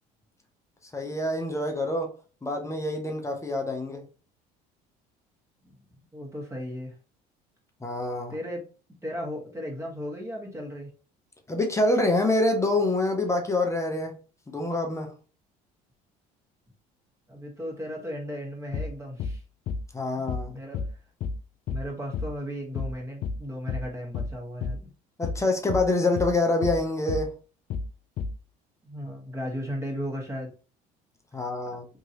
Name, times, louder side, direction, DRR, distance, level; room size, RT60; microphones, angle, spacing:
voice 1, 0.9-2.1 2.4-4.0 7.8-8.3 11.5-14.2 14.5-15.1 19.9-20.6 25.2-27.3 31.3-31.8, left 2 dB, 15° left, 0.7 m, -26 dB
voice 2, 5.6-7.0 8.3-8.7 9.0-10.9 17.3-19.4 20.5-20.8 21.7-24.9 28.8-30.5, equal, 15° right, 1.5 m, -36 dB
sound 1, 18.7-18.9 19.2-19.4 19.7-19.9 20.3-20.5 20.7-20.9 21.2-21.4 21.7-21.9 22.1-22.3 22.7-22.9 23.2-23.4 23.7-23.9 24.1-24.3 24.6-24.8 25.2-25.4 25.7-25.9 26.2-26.4 26.6-26.8 27.1-27.3 27.7-27.9 28.2-28.4, left 5 dB, 50° left, 0.4 m, -31 dB
2.9 x 2.7 x 2.7 m
supercardioid pair, 85°, 18 cm